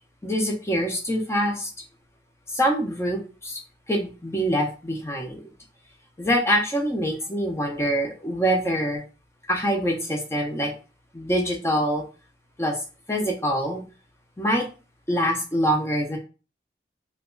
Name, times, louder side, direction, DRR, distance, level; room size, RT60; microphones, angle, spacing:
voice 1, 0.2-1.7 2.5-3.6 3.9-5.4 6.2-9.0 9.5-10.7 11.1-12.0 12.6-12.8 13.1-13.8 14.4-14.7 15.1-16.2, equal, 15° left, 1 dB, 0.5 m, -25 dB
2.9 x 2.2 x 3.6 m, 0.34 s
head